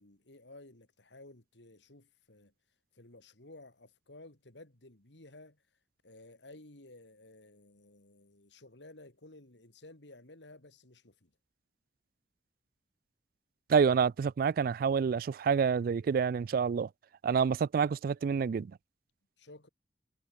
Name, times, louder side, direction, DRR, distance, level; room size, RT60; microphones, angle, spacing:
voice 1, 0.0-2.5 2.9-5.6 6.0-11.3 19.4-19.7, left 2 dB, 80° left, 3.1 m, -54 dB
voice 2, 13.7-16.9 17.2-18.7, right 6 dB, 55° right, 0.3 m, -28 dB
head